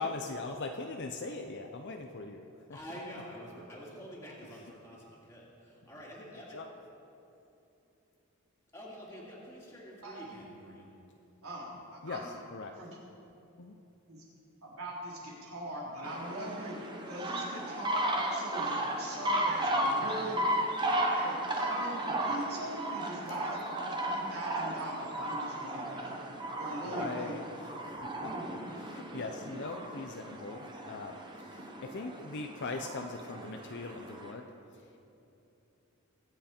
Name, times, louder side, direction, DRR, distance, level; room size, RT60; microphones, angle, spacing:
voice 1, 0.0-3.0 4.5-4.6 6.5-6.7 12.0-12.8 13.6-13.8 26.8-35.0, left 3 dB, 50° left, 4 dB, 0.6 m, -41 dB
voice 2, 2.7-6.6 8.7-10.9, equal, 15° left, -6 dB, 2.4 m, -47 dB
voice 3, 10.0-10.3 11.4-12.3 12.8-12.9 14.1-14.2 14.6-20.6 20.9-26.1 26.4-27.3 27.7-27.9 28.3-28.7, right 1 dB, 75° right, -5 dB, 3.6 m, -41 dB
sound 1, 16.0-34.3, right 1 dB, 20° right, 1.1 m, -35 dB
23.0 x 8.1 x 4.4 m, 2.8 s
head